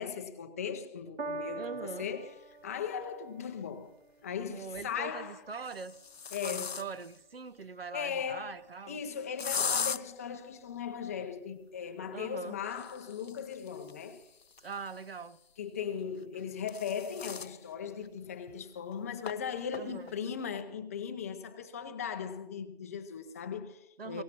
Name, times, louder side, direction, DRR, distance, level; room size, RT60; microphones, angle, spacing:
voice 1, 0.0-2.3 2.6-3.9 4.2-5.4 6.3-6.8 7.9-8.6 8.9-14.2 15.6-24.2, left 7 dB, 15° left, 0.6 m, -38 dB
Piano, 1.2-7.8 8.6-8.7, right 2 dB, 90° right, 2.4 m, -46 dB
voice 2, 1.6-2.1 4.4-6.0 6.4-9.0 12.1-12.6 14.6-15.4 19.8-20.1 24.0-24.2, right 5 dB, 70° right, 0.9 m, -42 dB
sound 1, 3.0-3.1 4.6-5.0 5.6-7.2 9.4-10.0 12.6-15.2 16.2-17.6 18.0-18.1 18.5-18.6 19.3-19.4 19.7-20.1, left 6 dB, 80° left, 0.7 m, -38 dB
23.0 x 17.5 x 3.0 m
figure-of-eight pair, 150°, 30 cm